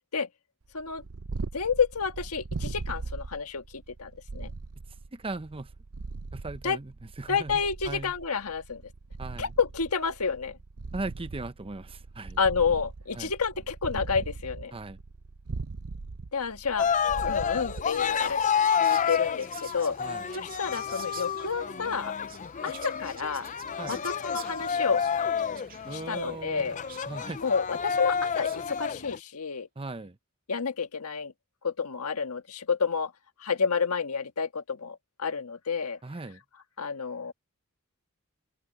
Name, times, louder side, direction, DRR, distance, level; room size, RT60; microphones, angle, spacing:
Purr, 0.8-18.5, right 3 dB, 75° right, 0.7 m, -40 dB
voice 1, 1.5-4.5 6.6-6.8 7.3-8.8 9.4-10.6 12.4-14.7 16.3-16.9 17.2-18.4 18.8-20.0 20.3-22.1 22.6-23.5 23.8-25.0 25.9-26.8 27.4-29.7 30.5-31.3 31.6-33.1 33.4-36.0 36.8-37.3, left 5 dB, 80° left, 1.6 m, -30 dB
voice 2, 5.1-5.7 6.3-8.1 9.2-9.5 10.9-12.4 13.1-13.3 14.7-15.0 20.0-20.3 23.8-24.0 25.9-26.8 27.1-27.4 29.8-30.2 36.0-36.4, right 2 dB, 25° right, 0.8 m, -38 dB
Cheering, 16.8-29.2, left 7 dB, 35° left, 0.5 m, -30 dB
Whispering, 17.4-28.8, right 9 dB, 40° right, 2.1 m, -50 dB
head